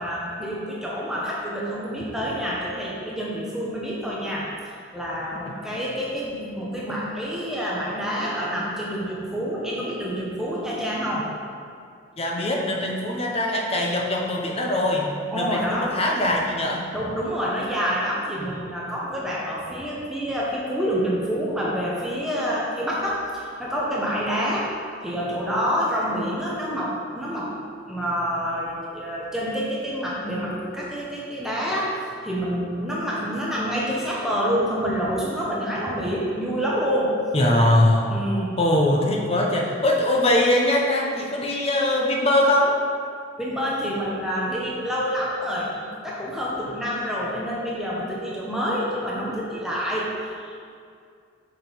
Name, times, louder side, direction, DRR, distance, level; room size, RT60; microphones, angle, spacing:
voice 1, 0.0-4.5 4.9-11.3 15.3-15.9 16.9-24.7 25.0-27.5 27.9-31.9 32.2-37.1 38.1-38.5 43.4-50.1 50.4-50.5, equal, ahead, -6 dB, 0.8 m, -27 dB
voice 2, 12.2-16.9 18.4-18.5 37.3-38.2 38.6-42.7, left 1 dB, 30° left, -1 dB, 0.8 m, -22 dB
6.0 x 5.3 x 4.5 m, 2.3 s
head